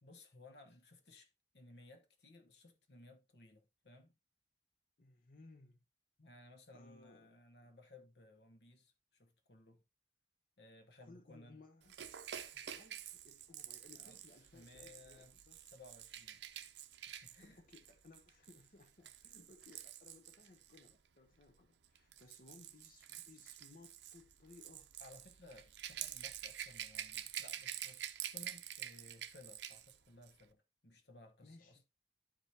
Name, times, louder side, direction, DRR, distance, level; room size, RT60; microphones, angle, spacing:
voice 1, 0.0-4.2 6.2-9.8 10.6-11.6 13.9-14.2 14.5-16.4 17.1-17.6 19.4-19.5 25.0-31.8, left 2 dB, 70° left, 1.1 m, -60 dB
voice 2, 5.0-5.8 6.7-7.3 11.0-12.0 12.5-15.7 17.4-24.9 31.4-31.8, left 3 dB, 50° left, 0.8 m, -62 dB
Rattle / Rattle (instrument), 11.9-20.9 21.8-30.0 30.2-30.4, right 10 dB, 80° right, 0.6 m, -48 dB
11.5 x 5.0 x 2.7 m
head